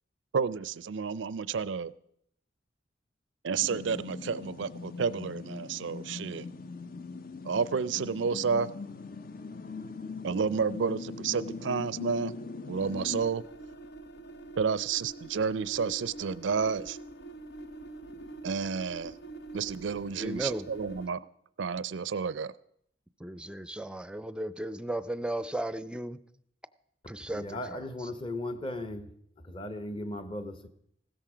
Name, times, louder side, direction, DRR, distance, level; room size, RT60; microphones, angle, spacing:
voice 1, 0.3-1.9 3.4-6.5 7.4-8.7 10.2-12.3 12.7-13.4 14.6-17.0 18.4-19.1 19.5-21.2 21.6-22.5, right 5 dB, 85° right, 0.5 m, -30 dB
sound 1, 3.6-13.2, left 4 dB, 50° left, 0.6 m, -41 dB
sound 2, 12.8-21.1, right 2 dB, 70° left, 0.9 m, -45 dB
voice 2, 20.2-20.7 23.2-26.2 27.1-28.1, right 1 dB, 5° right, 0.5 m, -35 dB
voice 3, 27.3-29.1 29.4-30.7, left 1 dB, 30° left, 1.0 m, -37 dB
16.0 x 13.5 x 5.0 m
head